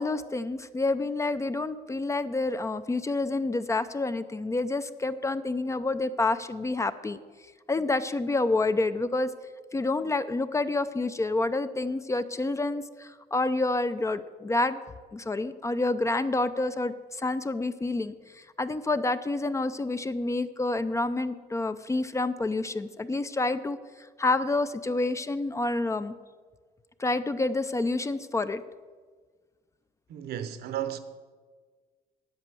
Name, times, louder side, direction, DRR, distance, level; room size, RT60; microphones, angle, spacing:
voice 1, 0.0-7.2 7.7-9.3 9.7-14.8 15.1-23.8 24.2-26.1 27.0-28.6, left 2 dB, 15° left, 0.5 m, -28 dB
voice 2, 30.1-31.0, right 10 dB, 70° right, 1.0 m, -33 dB
9.4 x 8.3 x 7.6 m
cardioid pair, 110°, 17 cm